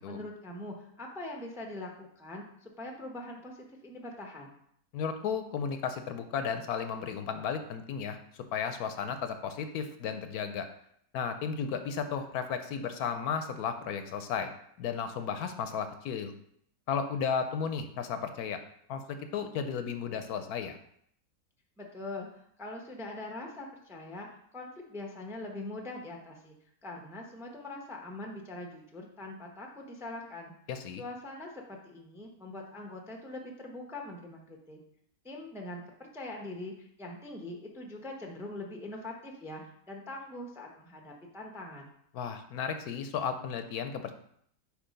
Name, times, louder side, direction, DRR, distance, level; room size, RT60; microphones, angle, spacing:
voice 1, 0.0-4.5 21.8-26.6 26.8-30.5 31.0-34.8 35.2-41.9, left 2 dB, 5° right, 1 dB, 0.5 m, -43 dB
voice 2, 4.9-8.2 8.5-10.7 11.1-14.5 14.8-16.3 16.9-18.6 18.9-20.8 30.7-31.0 42.1-44.1, left 6 dB, 75° left, 8 dB, 1.1 m, -34 dB
8.2 x 2.9 x 5.2 m, 0.68 s
omnidirectional pair, 1.7 m